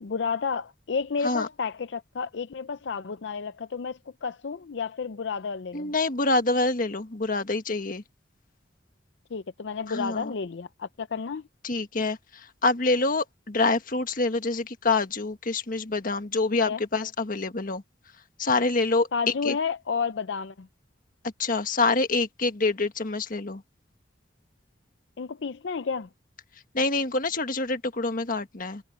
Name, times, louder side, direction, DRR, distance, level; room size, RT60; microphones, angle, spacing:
voice 1, 0.0-5.9 9.3-11.4 16.7-16.8 19.1-20.7 25.2-26.1, left 5 dB, 75° left, 0.5 m, -31 dB
voice 2, 5.7-8.0 9.9-10.3 11.6-17.8 18.4-19.1 19.4-19.5 21.4-23.6 26.7-28.8, left 3 dB, 50° left, 1.5 m, -26 dB
head